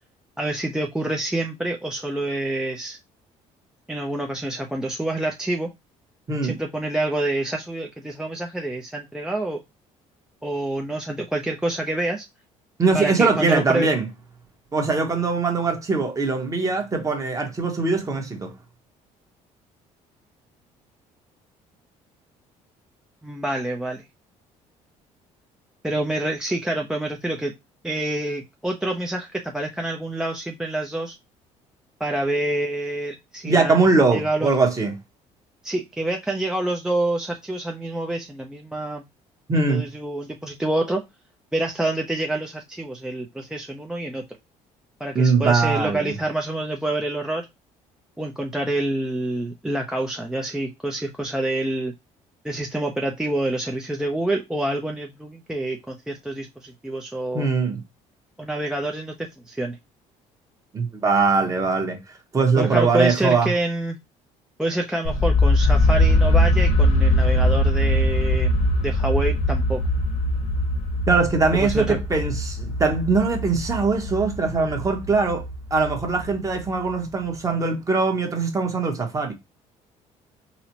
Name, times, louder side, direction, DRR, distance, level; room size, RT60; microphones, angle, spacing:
voice 1, 0.4-3.0 3.9-5.7 6.4-9.6 10.4-12.3 12.9-13.9 23.2-24.0 25.8-27.5 27.8-31.2 32.0-34.5 35.6-39.0 39.5-41.0 41.5-44.2 45.0-47.5 48.2-51.9 52.4-57.5 58.4-59.8 62.6-64.0 64.6-68.5 68.8-69.8 71.6-72.0, right 1 dB, 5° right, 0.4 m, -27 dB
voice 2, 12.8-14.1 14.7-18.5 33.4-34.9 39.5-39.8 45.1-46.1 57.3-57.8 60.7-62.0 62.3-63.5 71.1-75.4 75.7-79.3, right 4 dB, 25° right, 0.9 m, -21 dB
sound 1, 65.0-76.9, left 1 dB, 65° left, 1.0 m, -21 dB
4.0 x 2.0 x 2.8 m
cardioid pair, 120°, 14 cm